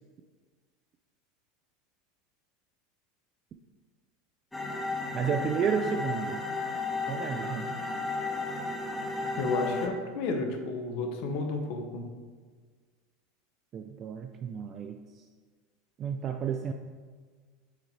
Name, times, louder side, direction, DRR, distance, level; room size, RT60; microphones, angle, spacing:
sound 1, 4.5-9.9, left 3 dB, 10° left, 0.9 m, -33 dB
voice 1, 5.1-6.4 7.1-7.8 13.7-15.2 16.0-16.7, right 7 dB, 35° right, 5 dB, 0.3 m, -32 dB
voice 2, 9.4-12.1, left 3 dB, 55° left, 4 dB, 0.8 m, -32 dB
6.3 x 4.0 x 4.2 m, 1.5 s
figure-of-eight pair, 75°, 0 cm